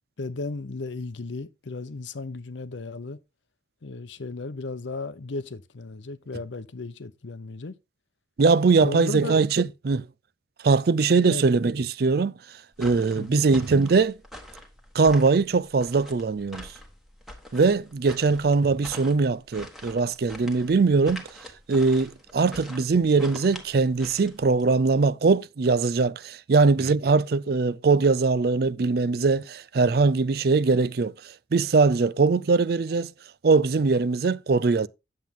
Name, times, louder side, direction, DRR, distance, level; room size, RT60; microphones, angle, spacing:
voice 1, 0.2-3.2 3.8-7.7 8.8-9.4 11.3-11.4 13.2-13.5, left 3 dB, 85° left, 0.7 m, -35 dB
voice 2, 8.4-10.1 10.6-12.3 12.8-14.1 14.9-16.7 17.5-21.2 21.7-31.1 31.5-33.1 33.4-34.9, right 4 dB, 55° right, 0.4 m, -21 dB
sound 1, 12.7-24.7, left 1 dB, ahead, 1.4 m, -44 dB
9.3 x 7.4 x 3.6 m
head